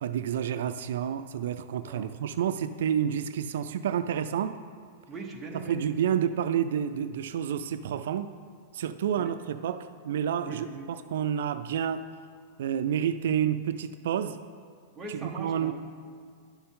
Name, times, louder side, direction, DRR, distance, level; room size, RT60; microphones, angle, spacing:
voice 1, 0.0-4.6 5.7-8.3 8.7-12.1 12.6-14.4 15.1-15.7, right 9 dB, 75° right, 10 dB, 0.3 m, -29 dB
voice 2, 5.1-5.8 9.2-9.3 10.4-10.9 15.0-15.7, right 3 dB, 10° right, -1 dB, 1.0 m, -40 dB
11.0 x 6.9 x 3.7 m, 2.1 s
supercardioid pair, 155°, 0 cm